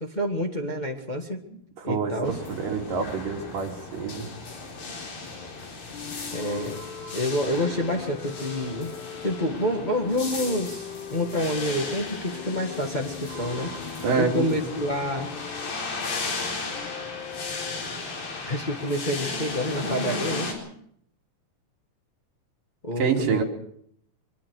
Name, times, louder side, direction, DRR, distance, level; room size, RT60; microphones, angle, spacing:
voice 1, 0.0-1.4 1.8-2.3 6.3-6.8 7.1-8.9 9.2-15.3 18.5-20.5 22.8-23.4, equal, 30° left, 2 dB, 0.8 m, -28 dB
voice 2, 1.5-4.3 14.0-14.7 23.0-23.4, right 5 dB, 70° right, 1 dB, 4.3 m, -27 dB
sound 1, 2.2-20.5, left 3 dB, 90° left, 6.0 m, -35 dB
sound 2, 5.9-17.8, left 9 dB, 70° left, 2.3 m, -41 dB
23.5 x 23.0 x 4.8 m, 0.68 s
omnidirectional pair, 4.0 m